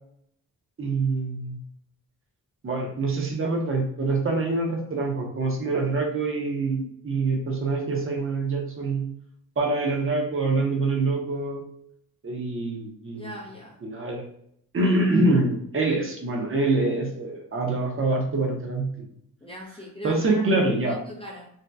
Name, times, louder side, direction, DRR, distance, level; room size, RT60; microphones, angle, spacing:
voice 1, 0.8-1.6 2.6-9.0 9.6-11.6 12.2-13.3 13.8-14.2 14.7-19.1 20.0-21.0, right 3 dB, 35° right, 1 dB, 0.6 m, -25 dB
voice 2, 13.1-13.8 19.4-21.5, equal, 15° left, -2 dB, 0.4 m, -39 dB
2.6 x 2.1 x 3.2 m, 0.70 s
wide cardioid pair, 120°, 36 cm